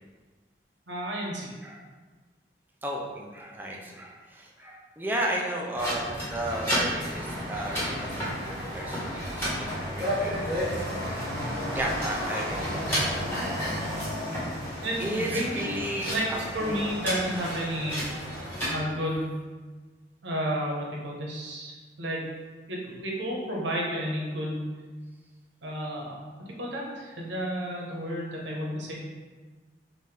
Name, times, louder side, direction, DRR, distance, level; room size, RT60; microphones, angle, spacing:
voice 1, 0.9-1.5 14.8-18.0 18.7-19.4 20.2-22.2 22.7-24.7 25.6-28.9, equal, 85° right, -2 dB, 1.0 m, -32 dB
voice 2, 2.8-11.3 11.7-13.2 15.0-16.8 18.6-18.9, right 1 dB, 10° right, -1 dB, 0.4 m, -34 dB
sound 1, 5.7-18.7, equal, 10° left, 1.4 m, -31 dB
5.5 x 2.6 x 3.4 m, 1.4 s
head